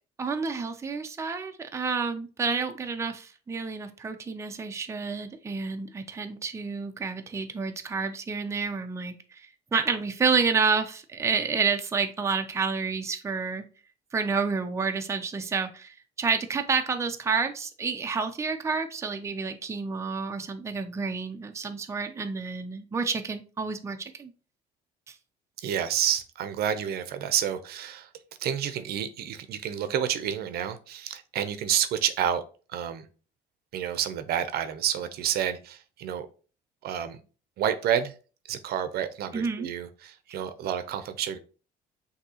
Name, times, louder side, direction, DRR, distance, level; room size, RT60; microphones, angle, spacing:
voice 1, 0.2-13.7 14.1-24.3 25.1-25.2 39.3-39.7, right 5 dB, 15° right, 6 dB, 0.5 m, -29 dB
voice 2, 25.6-28.1 28.4-32.4 32.7-33.1 33.7-36.3 36.8-37.2 37.6-38.1 38.5-41.4, right 9 dB, 65° right, 11 dB, 0.6 m, -29 dB
6.3 x 2.8 x 2.8 m, 0.37 s
cardioid pair, 110°, 17 cm